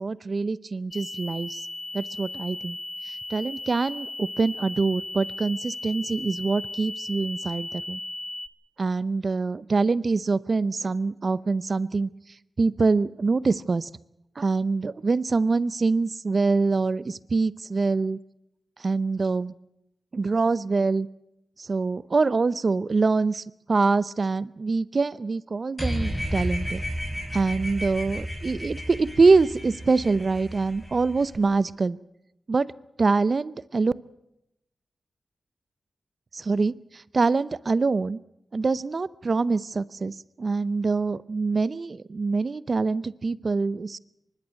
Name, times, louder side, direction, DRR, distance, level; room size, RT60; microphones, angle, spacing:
voice 1, 0.0-1.6 1.9-2.8 3.0-8.0 8.8-12.1 12.6-13.9 14.4-18.2 18.8-19.5 20.1-21.1 21.6-26.8 27.3-32.0 32.5-32.7 33.0-33.9 36.3-38.2 38.5-44.0, right 4 dB, 55° right, 17 dB, 0.7 m, -24 dB
sound 1, 0.9-8.5, left 2 dB, 40° left, 1.2 m, -36 dB
sound 2, 25.8-31.4, equal, 10° left, 5.9 m, -32 dB
24.0 x 11.5 x 9.4 m, 0.86 s
cardioid pair, 55°, 0 cm